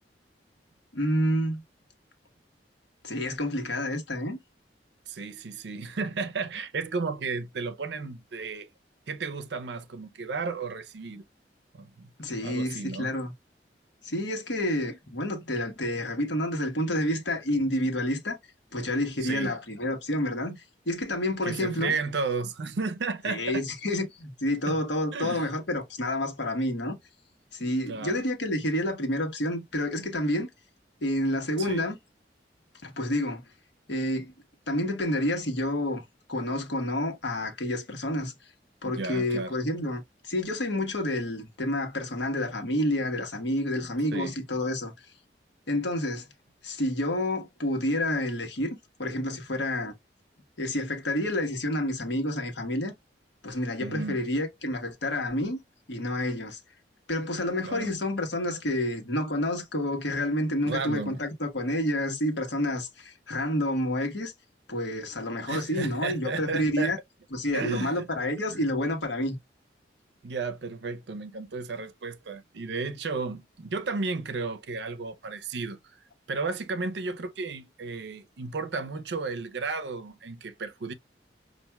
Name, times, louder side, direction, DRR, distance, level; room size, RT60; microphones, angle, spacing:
voice 1, 0.9-1.6 3.0-4.4 12.2-13.3 14.0-18.4 18.7-20.6 20.9-21.9 23.2-27.0 27.5-30.5 31.0-32.0 32.8-33.4 33.9-34.3 34.7-36.0 36.3-38.3 38.8-45.0 45.7-46.3 46.6-49.9 50.6-52.9 53.4-55.6 55.9-56.6 57.1-64.3 64.7-67.0 67.3-69.4, left 1 dB, 80° left, 1.2 m, -29 dB
voice 2, 5.1-8.7 9.1-11.2 11.7-12.1 12.4-13.1 19.2-19.6 21.4-23.6 24.7-24.8 25.1-25.5 27.9-28.2 31.6-31.8 38.8-39.6 44.1-44.4 53.8-54.2 57.6-57.9 60.7-61.2 65.5-66.9 67.5-68.0 68.5-68.6 70.2-76.0 76.3-80.9, right 4 dB, 75° right, 0.5 m, -33 dB
5.6 x 2.5 x 2.2 m
head